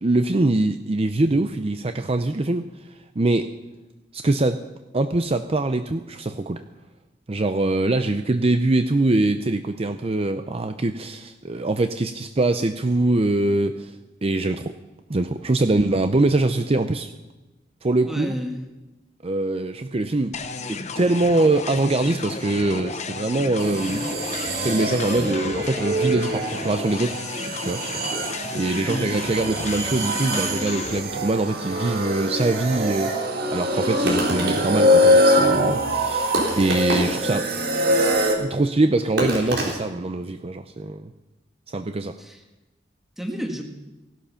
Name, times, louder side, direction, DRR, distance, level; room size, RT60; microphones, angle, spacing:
voice 1, 0.0-2.7 3.2-3.5 4.1-4.6 4.9-6.6 7.3-13.9 14.2-14.7 15.1-17.1 17.8-18.4 19.2-20.3 20.7-24.1 24.6-27.2 27.7-27.8 28.5-33.2 33.5-37.5 38.4-41.1 41.7-42.2, right 2 dB, 35° right, 8 dB, 0.6 m, -23 dB
voice 2, 18.0-18.6 25.2-25.4 28.8-29.1 42.2-42.4 43.2-43.6, equal, ahead, 3 dB, 1.7 m, -31 dB
sound 1, 20.3-31.0, left 4 dB, 40° left, 0.9 m, -33 dB
sound 2, 23.6-38.4, equal, 60° right, 2.1 m, -24 dB
sound 3, 30.5-32.0 32.4-32.5 34.1-34.9 35.5-35.6 36.3-37.4 37.7-37.8 39.2-39.8, right 1 dB, 85° right, 4.2 m, -27 dB
17.0 x 12.0 x 5.7 m, 1.1 s
head